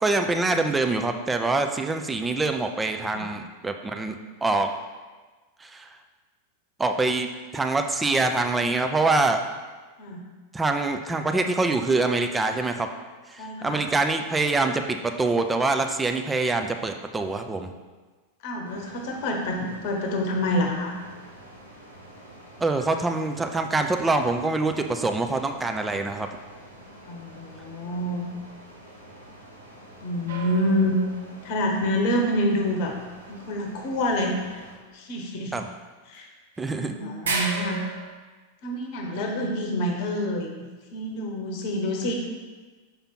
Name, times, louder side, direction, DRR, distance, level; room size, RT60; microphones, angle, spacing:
voice 1, 0.0-4.7 5.6-5.9 6.8-9.4 10.5-12.9 13.3-17.7 22.6-26.3 35.5-35.7 36.6-36.9, right 3 dB, 10° right, 5 dB, 0.5 m, -25 dB
voice 2, 13.4-13.8 18.4-21.0 27.1-28.3 30.0-31.0 31.4-33.0 33.3-34.7 34.9-35.5 36.1-36.3 36.7-37.9 38.6-42.1, left 1 dB, 45° left, 2 dB, 1.0 m, -27 dB
sound 1, 18.6-34.8, right 1 dB, 85° right, 1.2 m, -47 dB
sound 2, 30.3-31.6 36.1-36.2 36.5-36.6 37.2-38.2, right 3 dB, 65° right, 0.9 m, -32 dB
5.8 x 5.1 x 4.4 m, 1.3 s
figure-of-eight pair, 90°, 0 cm